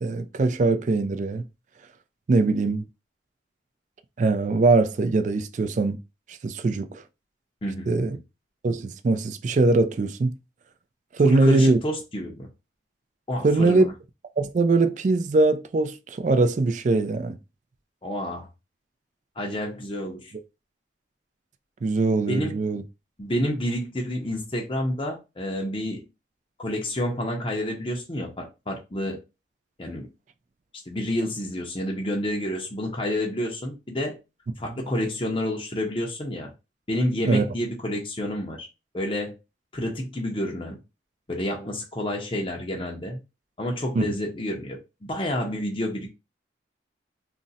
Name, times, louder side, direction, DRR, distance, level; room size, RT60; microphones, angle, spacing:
voice 1, 0.0-1.4 2.3-2.9 4.2-6.0 6.4-7.0 7.9-8.2 8.6-10.4 11.1-11.8 13.4-13.9 14.4-17.4 21.8-22.8 37.3-37.5 43.9-44.1, right 3 dB, 40° right, 0.3 m, -21 dB
voice 2, 11.2-12.5 13.3-13.9 18.0-18.5 19.4-20.3 22.3-22.6 23.2-26.1 26.6-29.2 29.8-30.1 30.9-34.2 34.6-36.5 36.9-38.7 38.9-39.4 39.7-40.8 41.3-43.2 43.6-46.1, left 1 dB, 30° left, 0.5 m, -29 dB
2.4 x 2.0 x 3.9 m
head